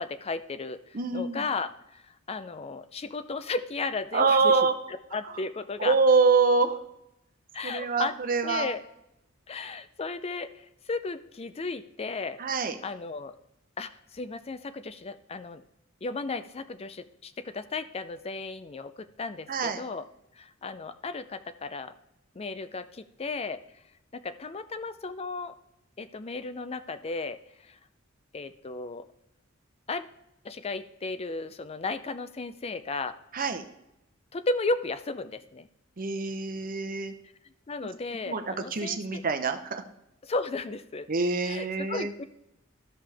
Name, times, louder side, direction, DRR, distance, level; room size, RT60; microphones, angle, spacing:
voice 1, 0.0-4.6 4.9-6.0 7.5-8.1 8.4-8.8 9.5-12.4 12.8-13.4 13.8-15.6 16.0-20.0 20.4-21.9 22.3-23.6 24.1-25.5 26.0-27.8 28.3-29.1 29.9-30.1 30.4-33.2 34.3-35.7 37.7-39.2 40.2-41.1 41.4-42.2, left 3 dB, 30° left, 12 dB, 0.5 m, -34 dB
voice 2, 0.9-1.4 4.1-4.7 5.8-6.8 7.6-8.7 12.4-12.8 19.5-19.8 33.3-33.6 36.0-37.1 38.3-39.8 41.1-42.1, right 4 dB, 45° right, 7 dB, 0.8 m, -25 dB
13.0 x 5.5 x 3.4 m, 0.86 s
head